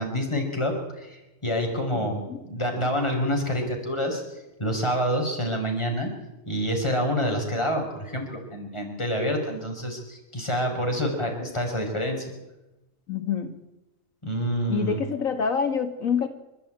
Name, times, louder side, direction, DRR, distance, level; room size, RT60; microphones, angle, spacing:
voice 1, 0.0-4.2 4.6-6.1 6.5-12.3 14.2-15.0, equal, 20° left, 2 dB, 5.2 m, -27 dB
voice 2, 13.1-13.5 14.7-16.3, left 6 dB, 80° left, 7 dB, 2.0 m, -26 dB
28.5 x 13.0 x 9.0 m, 1.0 s
omnidirectional pair, 1.4 m